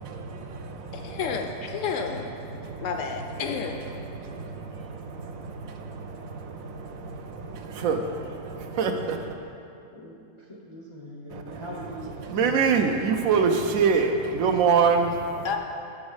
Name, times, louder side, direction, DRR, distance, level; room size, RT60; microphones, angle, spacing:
voice 1, 0.0-1.2 1.7-3.1 3.5-9.4 11.3-15.6, right 5 dB, 75° right, 5 dB, 1.0 m, -27 dB
voice 2, 0.9-2.4 2.8-3.8 15.4-15.6, left 6 dB, 70° left, 4 dB, 0.9 m, -31 dB
voice 3, 9.9-12.5, equal, 35° left, -2 dB, 0.5 m, -42 dB
7.1 x 6.2 x 4.8 m, 2.6 s
omnidirectional pair, 1.5 m